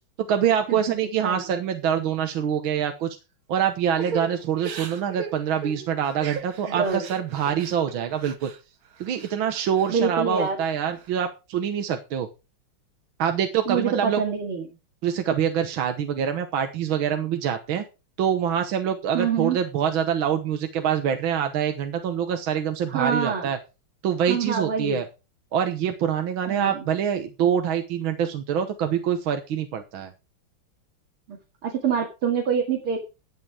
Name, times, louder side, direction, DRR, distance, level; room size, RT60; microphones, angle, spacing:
voice 1, 0.3-3.2 3.5-8.5 9.0-12.3 13.2-14.2 15.0-17.8 18.2-23.6 24.0-25.1 25.5-30.1, right 8 dB, 70° right, 6 dB, 1.9 m, -25 dB
Crying sobbing / Breathing, 4.0-8.6 9.0-9.9 10.3-11.1, right 6 dB, 50° right, 1.4 m, -38 dB
voice 2, 6.7-7.0 9.9-10.6 13.7-14.6 19.1-19.6 22.9-23.5 24.3-25.0 26.5-26.8 31.3-31.4 31.6-33.0, right 6 dB, 90° right, 0 dB, 3.1 m, -25 dB
12.0 x 8.0 x 4.9 m, 0.30 s
omnidirectional pair, 2.3 m